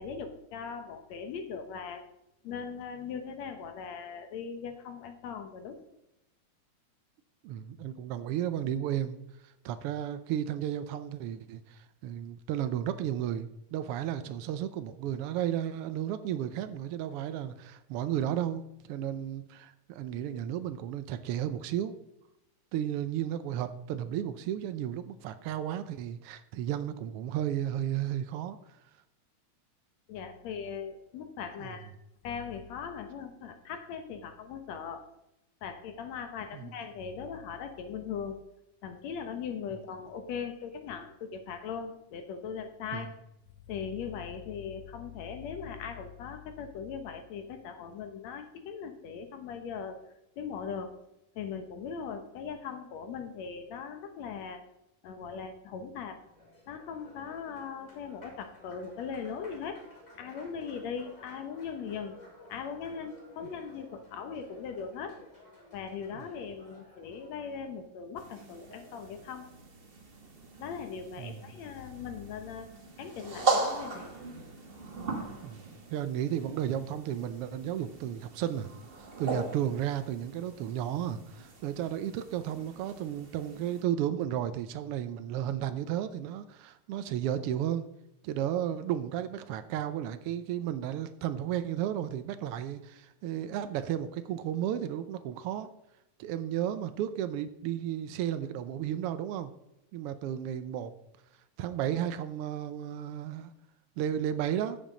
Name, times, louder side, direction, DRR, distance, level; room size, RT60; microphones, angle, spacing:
voice 1, 0.0-2.0 2.4-5.8 30.1-31.9 32.2-35.1 35.6-38.4 38.8-43.2 43.7-50.0 50.4-51.0 51.4-54.6 55.0-56.2 56.7-59.8 60.1-62.2 62.5-65.2 65.7-69.5 70.6-72.7 73.0-74.1, left 6 dB, 70° left, 8 dB, 2.2 m, -39 dB
voice 2, 7.4-9.2 9.6-18.6 18.9-21.9 22.7-28.6 31.6-31.7 36.5-36.7 42.9-43.0 66.1-66.2 71.2-71.4 75.4-75.6 75.9-78.7 79.2-87.8 88.2-95.7 96.2-99.5 99.9-100.9 101.6-103.5 104.0-104.8, right 10 dB, 90° right, 10 dB, 1.2 m, -33 dB
Applause, 56.0-67.8, left 1 dB, 15° left, 3.8 m, -55 dB
sound 1, 68.2-83.8, right 3 dB, 40° right, 0.7 m, -38 dB
11.0 x 7.3 x 5.0 m, 0.86 s
omnidirectional pair, 3.3 m